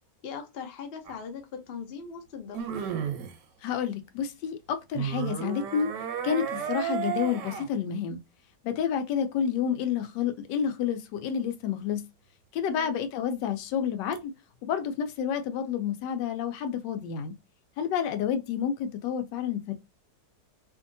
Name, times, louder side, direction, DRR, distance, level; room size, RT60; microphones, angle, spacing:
voice 1, 0.2-2.7 12.7-13.0, left 6 dB, 70° left, 0.5 m, -40 dB
sound 1, 1.1-1.2 2.5-3.4 4.9-7.7 14.1-14.2, right 8 dB, 90° right, 1.3 m, -32 dB
voice 2, 3.6-5.9 6.2-8.2 8.6-12.1 12.5-14.3 14.6-17.3 17.8-19.7, left 8 dB, 85° left, 1.2 m, -29 dB
2.8 x 2.6 x 2.5 m
omnidirectional pair, 1.8 m